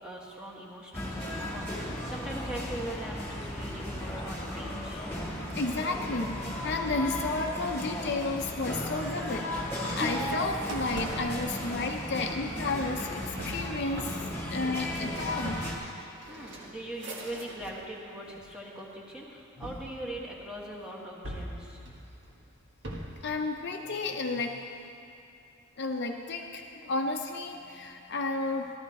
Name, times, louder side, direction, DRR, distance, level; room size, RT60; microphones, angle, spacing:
voice 1, 0.0-5.0 16.3-21.8, right 1 dB, 5° right, -3 dB, 1.5 m, -41 dB
sound 1, 0.9-15.8, left 1 dB, 10° left, 2.0 m, -35 dB
voice 2, 5.5-14.1 14.5-15.6 23.2-24.6 25.8-28.7, left 3 dB, 55° left, 2 dB, 0.7 m, -32 dB
Opening Refrigerator Drawers and Cabinets, 8.7-17.9 18.2-18.9 19.6-20.7 21.2-23.3, right 1 dB, 60° right, 1.5 m, -42 dB
14.5 x 12.5 x 4.2 m, 2.7 s
head